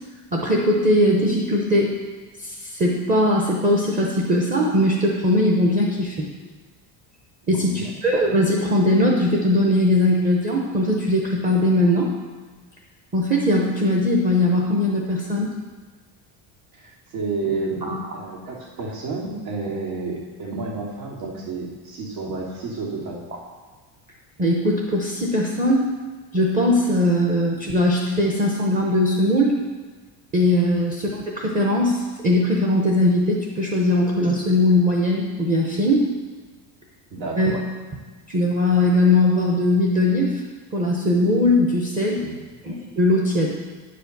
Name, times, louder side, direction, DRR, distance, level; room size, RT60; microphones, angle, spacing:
voice 1, 0.3-1.9 2.4-6.2 7.5-12.1 13.1-15.5 17.9-18.2 24.4-25.9 26.3-29.5 30.3-36.0 37.4-37.6 38.3-40.4 40.7-42.2 42.6-43.5, left 1 dB, 15° right, -2 dB, 0.8 m, -20 dB
voice 2, 7.4-7.8 16.7-23.2 37.1-37.6 42.2-42.3, right 3 dB, 85° right, -4 dB, 3.1 m, -30 dB
9.7 x 5.1 x 6.6 m, 1.4 s
cardioid pair, 180°, 44 cm